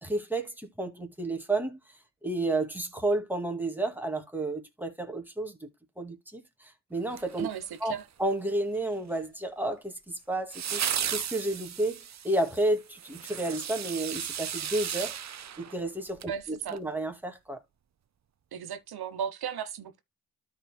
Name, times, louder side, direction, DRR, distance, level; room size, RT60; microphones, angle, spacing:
voice 1, 0.0-1.8 2.2-5.7 6.0-7.5 7.8-7.9 8.2-9.9 10.3-12.0 12.2-15.2 15.6-17.6, right 2 dB, 5° right, 2.1 m, -31 dB
sound 1, 7.1-8.0 10.5-16.3 16.7-16.8, right 9 dB, 45° right, 0.6 m, -35 dB
voice 2, 7.4-8.1 16.3-16.8 18.5-20.0, right 8 dB, 85° right, 1.2 m, -36 dB
13.0 x 4.8 x 2.2 m
cardioid pair, 65°, 37 cm